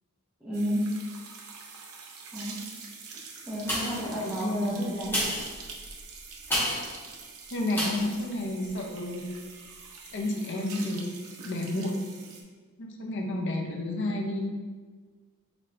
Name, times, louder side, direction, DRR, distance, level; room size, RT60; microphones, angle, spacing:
voice 1, 0.4-0.9 2.3-2.6 3.5-5.2, equal, 10° right, -11 dB, 0.7 m, -31 dB
sound 1, 0.5-12.4, right 5 dB, 75° right, 0.6 m, -45 dB
sound 2, 3.6-4.2 5.0-7.0 7.7-8.1 8.6-8.7, equal, 10° left, 1.1 m, -31 dB
voice 2, 4.0-4.8 7.5-9.3 10.1-11.2 11.4-12.1 12.8-14.5, left 1 dB, 55° left, 1 dB, 0.6 m, -31 dB
4.0 x 3.1 x 3.2 m, 1.5 s
head